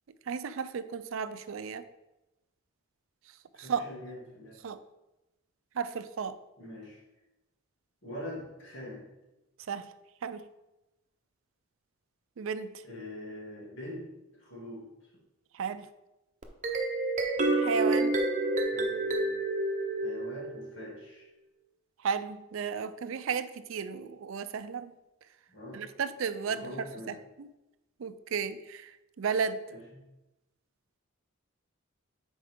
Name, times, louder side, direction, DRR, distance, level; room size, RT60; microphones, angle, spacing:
voice 1, 0.3-1.8 3.6-3.8 4.6-4.8 5.7-6.4 9.7-9.9 10.2-10.4 12.4-12.8 15.5-15.9 17.5-18.2 22.0-24.9 25.7-27.5 28.0-29.6, right 6 dB, 70° right, 13 dB, 0.4 m, -34 dB
voice 2, 3.5-4.6 6.6-7.0 8.0-9.0 12.8-15.1 18.7-19.4 20.0-21.3 25.5-25.8 26.4-27.2 29.7-30.0, left 1 dB, 60° left, -4 dB, 2.5 m, -44 dB
sound 1, 16.4-20.8, right 2 dB, 35° right, 0.7 m, -29 dB
9.2 x 4.7 x 3.6 m, 0.99 s
head